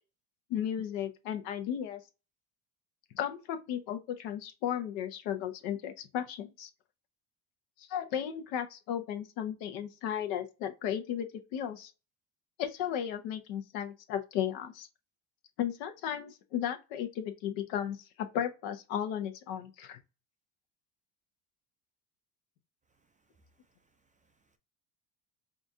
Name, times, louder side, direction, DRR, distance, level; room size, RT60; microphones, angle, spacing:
voice 1, 0.5-2.0 3.1-6.7 7.8-11.9 12.6-14.9 15.6-20.0, left 9 dB, 75° left, 0.9 m, -35 dB
voice 2, 23.0-24.6, right 2 dB, 20° right, 0.3 m, -72 dB
5.0 x 2.4 x 2.6 m
supercardioid pair, 95°, 45 cm